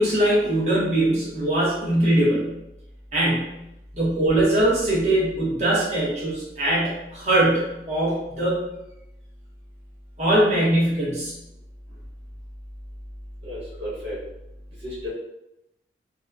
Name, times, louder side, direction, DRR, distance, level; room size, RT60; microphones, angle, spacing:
voice 1, 0.0-2.5 3.1-3.6 3.9-8.6 10.2-11.3, right 1 dB, 40° right, -7 dB, 0.9 m, -21 dB
voice 2, 13.4-14.2 14.8-15.1, left 1 dB, 80° right, -7 dB, 1.3 m, -33 dB
2.8 x 2.0 x 2.3 m, 0.89 s
head